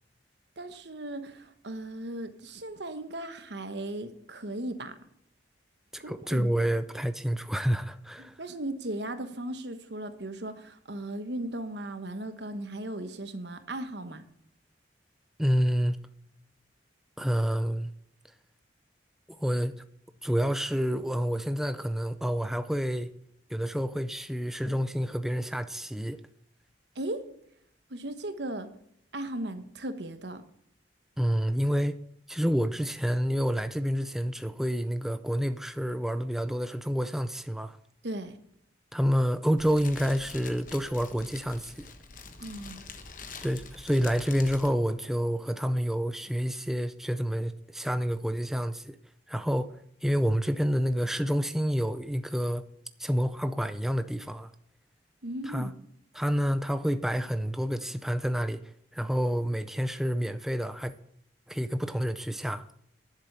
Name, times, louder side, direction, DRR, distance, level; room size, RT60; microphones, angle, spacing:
voice 1, 0.6-5.0 6.0-6.5 8.2-14.2 26.9-27.2 27.9-28.7 29.1-30.4 38.0-38.4 42.4-42.8 55.2-55.7, right 1 dB, 70° right, 1.2 m, -37 dB
voice 2, 5.9-8.3 15.4-16.0 17.2-17.9 19.4-19.7 20.2-23.1 23.5-26.2 31.2-32.0 32.3-37.8 38.9-41.9 43.4-49.0 49.3-52.6 53.0-54.5 55.4-55.7 56.1-58.6 58.9-60.9 61.5-62.6, equal, ahead, 0.4 m, -28 dB
Fire, 39.6-44.7, left 4 dB, 45° left, 1.2 m, -45 dB
11.0 x 7.7 x 6.7 m
head